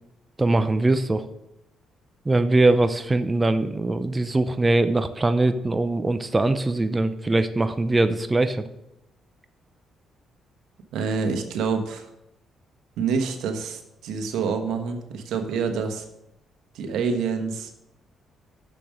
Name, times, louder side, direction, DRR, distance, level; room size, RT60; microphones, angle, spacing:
voice 1, 0.4-1.3 2.3-8.6, right 2 dB, 20° right, 10 dB, 0.6 m, -22 dB
voice 2, 10.9-12.1 13.0-16.0 16.7-17.7, right 5 dB, 85° right, 5 dB, 1.2 m, -27 dB
6.9 x 6.8 x 6.5 m, 0.85 s
cardioid pair, 90°, 0 cm